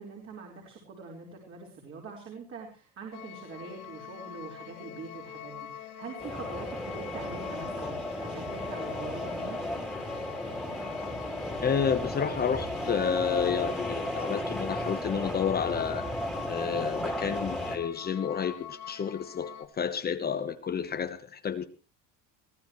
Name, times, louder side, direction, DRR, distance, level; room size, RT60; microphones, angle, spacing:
voice 1, 0.0-9.6, right 4 dB, 35° right, -1 dB, 4.6 m, -43 dB
sound 1, 3.1-19.6, left 10 dB, 50° left, 2.6 m, -44 dB
sound 2, 6.2-17.8, left 1 dB, ahead, 3.1 m, -35 dB
voice 2, 11.6-16.1 16.4-21.6, left 7 dB, 25° left, 8 dB, 1.1 m, -30 dB
23.0 x 15.5 x 3.2 m, 0.36 s
cardioid pair, 145°, 36 cm